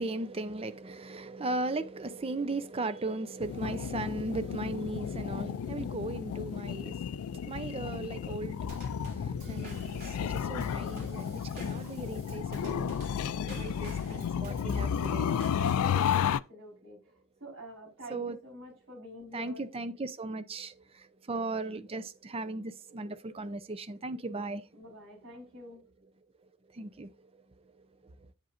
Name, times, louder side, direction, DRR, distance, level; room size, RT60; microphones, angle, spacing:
voice 1, 0.0-13.0 13.5-15.5 18.1-18.4 19.3-24.7 26.7-27.1 28.0-28.3, right 2 dB, 25° right, 0.5 m, -37 dB
sound 1, 3.4-16.4, left 8 dB, 75° left, 0.3 m, -33 dB
Drum kit / Snare drum / Bass drum, 8.7-16.4, right 1 dB, 40° right, 3.8 m, -48 dB
voice 2, 13.3-13.8 14.1-14.6 15.5-19.7 24.7-25.8, equal, 60° right, 4.7 m, -48 dB
8.1 x 7.7 x 2.5 m
head